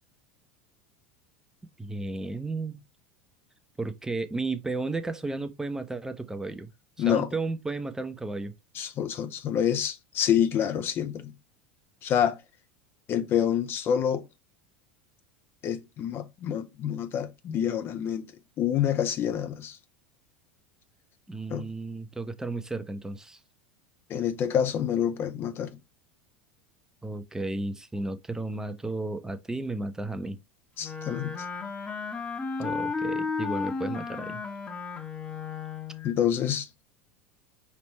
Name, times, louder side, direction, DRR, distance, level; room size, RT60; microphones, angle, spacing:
voice 1, 1.8-2.8 3.8-6.7 7.1-8.5 21.3-23.4 27.0-30.4 32.6-34.4, right 2 dB, 10° right, 0.7 m, -33 dB
voice 2, 7.0-7.3 8.7-11.3 12.0-12.4 13.1-14.2 15.6-18.3 18.6-19.8 21.5-21.7 24.1-25.8 30.8-31.3 36.0-36.7, left 9 dB, 40° left, 0.6 m, -27 dB
Wind instrument woodwind instrument, 30.8-36.1, left 5 dB, 20° left, 1.0 m, -33 dB
5.1 x 3.3 x 3.0 m
figure-of-eight pair, 80°, 6 cm